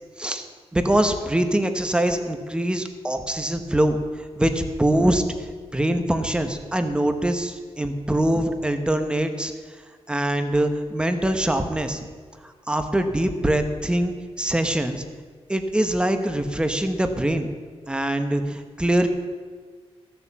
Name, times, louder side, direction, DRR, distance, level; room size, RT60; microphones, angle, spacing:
voice 1, 0.7-4.0 4.4-5.2 5.7-9.5 10.1-12.0 12.4-15.0 15.5-17.5 17.9-19.1, right 1 dB, 10° right, 7 dB, 0.9 m, -23 dB
15.0 x 6.9 x 7.3 m, 1.6 s
wide cardioid pair, 170°, 11 cm